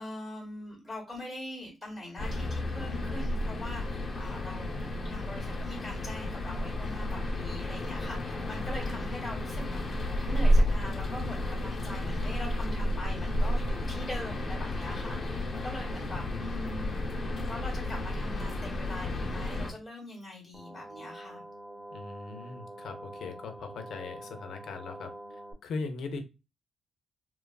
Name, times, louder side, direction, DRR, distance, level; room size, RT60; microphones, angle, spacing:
voice 1, 0.0-17.0 17.5-21.4, left 1 dB, ahead, -3 dB, 1.0 m, -42 dB
sound 1, 2.2-19.7, left 1 dB, 35° left, 0.8 m, -31 dB
sound 2, 20.5-25.5, right 1 dB, 20° right, 0.5 m, -45 dB
voice 2, 21.9-25.1 25.6-26.2, left 4 dB, 75° left, 6 dB, 0.5 m, -39 dB
2.9 x 2.3 x 2.2 m, 0.27 s
cardioid pair, 140°, 0 cm